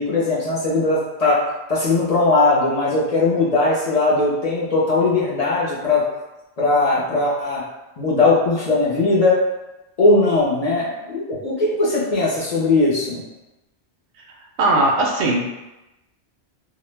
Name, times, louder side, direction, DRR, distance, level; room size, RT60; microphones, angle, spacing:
voice 1, 0.0-1.4 1.7-6.0 6.6-7.6 8.0-9.4 10.0-13.2, left 3 dB, 45° left, -7 dB, 0.5 m, -19 dB
voice 2, 14.6-15.6, right 2 dB, 65° right, 0 dB, 0.7 m, -19 dB
2.1 x 2.0 x 3.1 m, 1.0 s
omnidirectional pair, 1.1 m